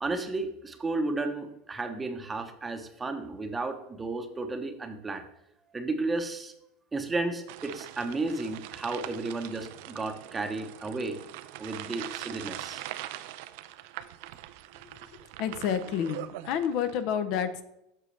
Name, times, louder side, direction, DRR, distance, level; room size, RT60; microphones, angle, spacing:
voice 1, 0.0-5.2 5.7-6.5 6.9-11.2 11.6-12.8, right 3 dB, 15° right, 7 dB, 0.8 m, -33 dB
sound 1, 7.5-17.0, right 14 dB, 75° right, 0.4 m, -42 dB
voice 2, 15.4-17.6, left 8 dB, 60° left, 10 dB, 0.6 m, -29 dB
7.5 x 6.2 x 3.3 m, 0.83 s
supercardioid pair, 130°, 0 cm